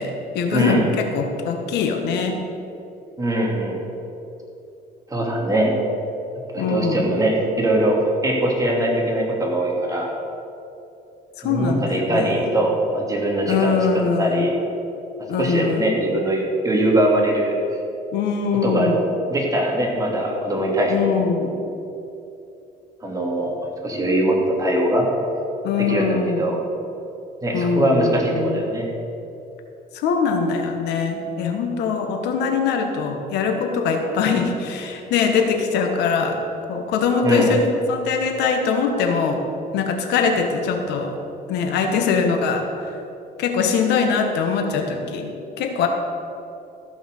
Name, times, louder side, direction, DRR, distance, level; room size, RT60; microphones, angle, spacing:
voice 1, 0.0-2.4 6.6-7.1 11.4-12.4 13.5-14.5 15.3-15.9 18.1-19.1 20.9-21.5 25.6-26.6 27.5-28.6 30.0-36.4 36.7-39.4 39.7-41.1 41.5-42.6 43.4-45.9, left 5 dB, 85° left, 4 dB, 1.4 m, -22 dB
voice 2, 0.5-0.9 3.2-3.9 5.1-5.8 6.5-10.1 11.4-14.5 15.4-17.5 18.6-18.9 19.3-21.3 23.0-23.6 23.8-25.1 25.8-26.6 27.4-28.8 37.2-37.5, right 1 dB, 20° right, -2 dB, 2.7 m, -21 dB
14.5 x 6.0 x 6.7 m, 2.8 s
cardioid pair, 110°, 17 cm